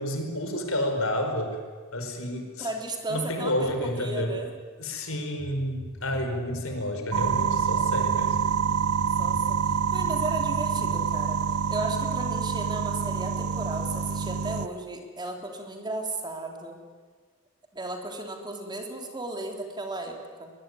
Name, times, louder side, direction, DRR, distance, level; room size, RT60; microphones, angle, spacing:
voice 1, 0.0-1.6 1.9-2.7 3.1-4.4 4.8-8.7 9.0-9.8 10.7-10.8, left 1 dB, 70° left, 4 dB, 4.9 m, -30 dB
voice 2, 2.6-4.5 9.2-11.4 11.7-16.8 17.7-20.5, right 2 dB, 20° right, 3 dB, 3.2 m, -35 dB
sound 1, 7.1-14.7, right 6 dB, 90° right, 0.8 m, -26 dB
22.5 x 21.5 x 9.6 m, 1.5 s
head